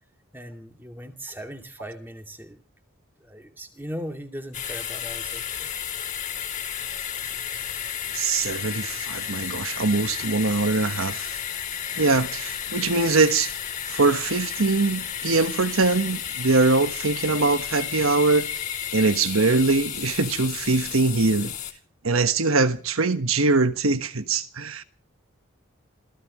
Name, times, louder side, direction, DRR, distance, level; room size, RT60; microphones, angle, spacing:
voice 1, 0.3-2.6 3.2-5.7, equal, 10° right, 2.4 m, -38 dB
sound 1, 4.5-21.7, left 9 dB, 35° left, 2.9 m, -32 dB
voice 2, 8.1-11.4 11.9-13.5 13.9-18.5 18.9-21.5 22.0-24.8, right 3 dB, 85° right, 1.3 m, -22 dB
28.0 x 16.0 x 3.1 m
head